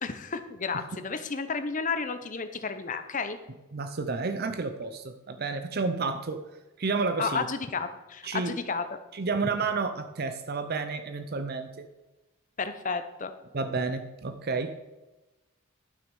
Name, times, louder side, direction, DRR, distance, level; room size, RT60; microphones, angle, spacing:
voice 1, 0.0-3.4 7.2-8.9 12.6-13.3, left 4 dB, 35° left, 10 dB, 0.7 m, -32 dB
voice 2, 3.7-6.5 6.8-7.5 8.2-8.6 9.1-11.9 13.5-14.7, right 4 dB, 45° right, 8 dB, 0.6 m, -31 dB
11.5 x 6.0 x 5.4 m, 1.1 s
head